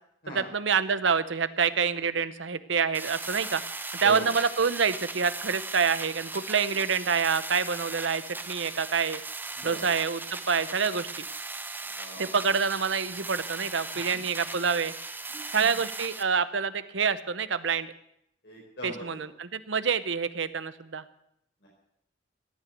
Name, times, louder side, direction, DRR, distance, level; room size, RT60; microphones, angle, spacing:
voice 1, 0.3-3.6 4.0-9.2 9.6-11.1 12.2-14.9 15.5-17.9 18.8-21.0, right 6 dB, 75° right, 14 dB, 0.9 m, -27 dB
sound 1, 2.9-16.2, right 3 dB, 10° right, 0.8 m, -38 dB
voice 2, 4.0-4.3 9.6-9.9 11.9-12.4 14.1-14.2 15.3-15.7 18.4-19.2 21.6-21.7, right 1 dB, 60° left, -4 dB, 4.9 m, -40 dB
16.5 x 9.2 x 8.1 m, 0.75 s
head